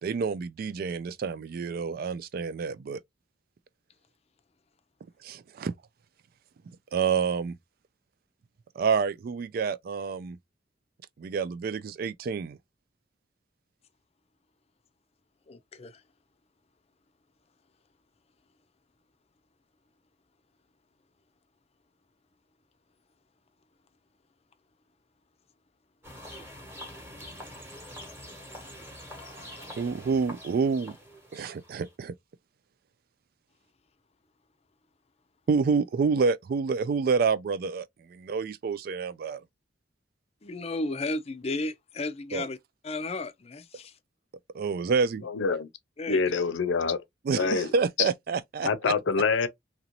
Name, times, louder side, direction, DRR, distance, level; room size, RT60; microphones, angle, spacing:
voice 1, 0.0-3.0 5.2-5.7 6.9-7.6 8.8-10.4 11.2-12.6 29.7-31.0 31.3-32.1 35.5-39.4 42.3-42.5 44.5-45.2 47.3-48.7, right 5 dB, 50° right, 0.3 m, -28 dB
voice 2, 15.5-16.0 40.4-42.6 42.8-43.9 46.0-46.2 47.4-47.5, left 2 dB, 35° left, 0.5 m, -34 dB
sound 1, 26.0-32.0, left 1 dB, 15° right, 1.1 m, -45 dB
voice 3, 45.2-45.7 46.1-47.0 47.4-47.7 48.0-48.1 48.6-49.5, left 5 dB, 80° left, 0.6 m, -26 dB
2.9 x 2.6 x 2.8 m
head